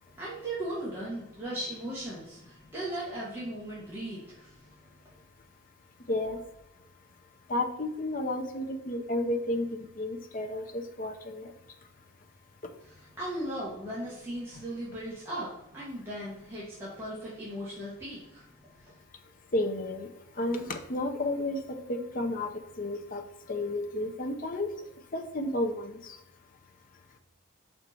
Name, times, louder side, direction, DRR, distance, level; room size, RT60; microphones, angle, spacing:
voice 1, 0.2-4.7 12.8-18.5 18.8-19.0, right 1 dB, 10° right, -9 dB, 1.4 m, -37 dB
voice 2, 6.1-6.4 7.5-11.5 19.5-20.1 20.4-20.6 20.9-22.5 22.8-23.2 23.5-24.7 25.1-26.2, left 1 dB, 40° left, 4 dB, 0.7 m, -32 dB
5.8 x 4.5 x 4.2 m, 0.87 s
head